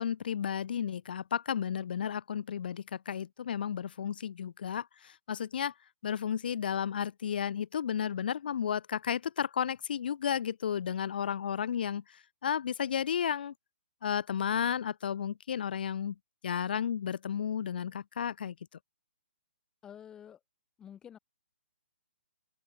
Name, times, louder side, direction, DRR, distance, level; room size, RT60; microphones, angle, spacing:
voice 1, 0.0-5.7 6.0-13.5 14.0-16.2 16.4-18.6, left 8 dB, 45° left, 0.8 m, -33 dB
voice 2, 19.8-20.4 20.8-21.2, left 9 dB, 10° left, 3.0 m, -49 dB
open air
hypercardioid pair, 170°, 7 cm